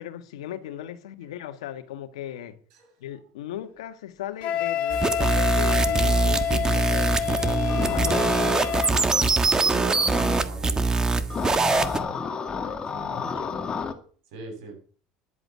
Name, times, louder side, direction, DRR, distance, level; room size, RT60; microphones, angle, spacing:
voice 1, 0.0-2.6 3.0-8.4 12.6-12.7 13.0-13.6, left 11 dB, 90° left, 1.4 m, -37 dB
voice 2, 2.7-3.2 9.0-11.1 12.1-12.2 12.9-13.3 14.2-14.8, right 3 dB, 75° right, 7.7 m, -44 dB
Wind instrument woodwind instrument, 4.4-9.0, left 8 dB, 55° left, 2.8 m, -27 dB
sound 1, 4.9-12.0, right 3 dB, 20° right, 1.4 m, -23 dB
sound 2, 7.7-10.4 11.3-13.9, left 5 dB, 30° left, 2.0 m, -31 dB
11.0 x 8.0 x 7.5 m
supercardioid pair, 90°, 3 cm